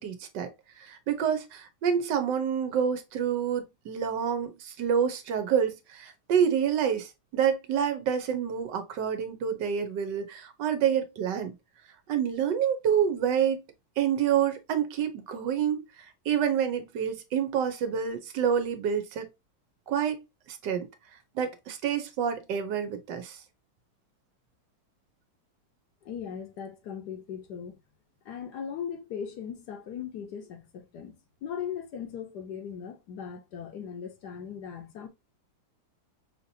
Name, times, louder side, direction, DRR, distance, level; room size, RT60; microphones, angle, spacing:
voice 1, 0.0-11.6 12.1-13.6 14.0-19.3 19.9-20.2 20.5-20.9 21.3-23.4, right 8 dB, 70° right, 1.3 m, -28 dB
voice 2, 26.0-27.8 28.2-35.1, left 8 dB, 65° left, 1.2 m, -38 dB
5.7 x 2.8 x 2.7 m
omnidirectional pair, 2.1 m